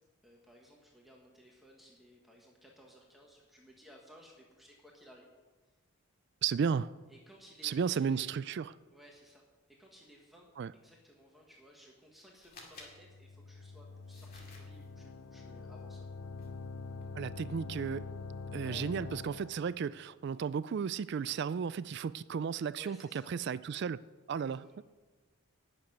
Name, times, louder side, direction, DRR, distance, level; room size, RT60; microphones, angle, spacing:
voice 1, 0.2-5.3 7.1-8.3 8.9-9.4 9.7-16.0 18.5-18.9 22.8-23.3 24.5-24.8, equal, ahead, 1.4 m, -58 dB
voice 2, 6.4-6.9 7.6-8.8 10.6-10.7 17.2-18.1 18.5-24.0 24.3-24.8, right 6 dB, 50° right, 0.3 m, -34 dB
sound 1, 12.4-13.0 14.1-14.9 16.4-16.5 16.9-17.1, left 3 dB, 45° left, 2.3 m, -54 dB
sound 2, 12.9-19.7, left 4 dB, 90° left, 0.7 m, -45 dB
11.5 x 6.7 x 9.2 m
head